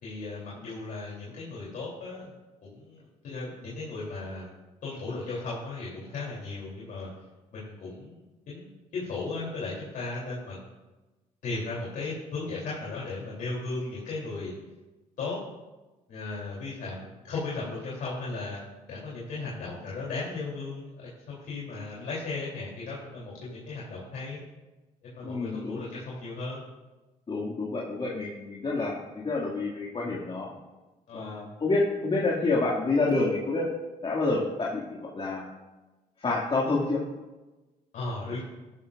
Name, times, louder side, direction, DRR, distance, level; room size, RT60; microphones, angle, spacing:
voice 1, 0.0-2.3 2.6-4.5 4.8-7.1 7.5-10.6 11.4-14.5 15.2-15.4 16.1-18.6 18.9-24.4 25.0-26.6 31.1-31.4 37.9-38.4, left 3 dB, 70° left, -6 dB, 3.3 m, -36 dB
voice 2, 25.2-25.8 27.3-30.5 31.1-33.7 34.0-35.5 36.2-37.0, left 3 dB, 40° left, -4 dB, 2.3 m, -28 dB
14.0 x 12.0 x 2.5 m, 1.1 s
cardioid pair, 80°, 15 cm